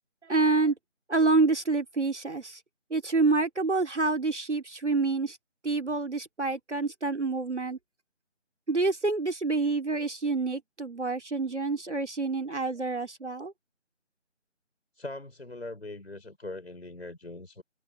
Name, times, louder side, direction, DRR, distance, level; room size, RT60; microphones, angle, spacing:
voice 1, 0.2-0.7 1.1-2.6 2.9-5.4 5.6-7.8 8.7-13.5, right 3 dB, 70° right, 2.8 m, -27 dB
voice 2, 15.0-17.6, left 2 dB, 60° left, 5.5 m, -41 dB
figure-of-eight pair, 165°, 37 cm